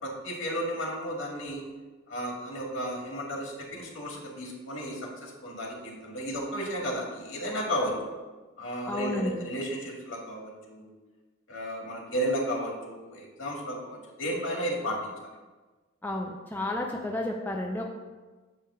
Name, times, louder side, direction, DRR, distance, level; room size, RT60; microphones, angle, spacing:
voice 1, 0.0-1.6 2.1-8.0 8.6-10.9 11.5-15.1, equal, 70° left, -2 dB, 2.1 m, -33 dB
voice 2, 8.9-9.4 16.0-17.9, left 1 dB, 10° left, 0 dB, 0.5 m, -31 dB
8.8 x 3.4 x 6.8 m, 1.3 s
head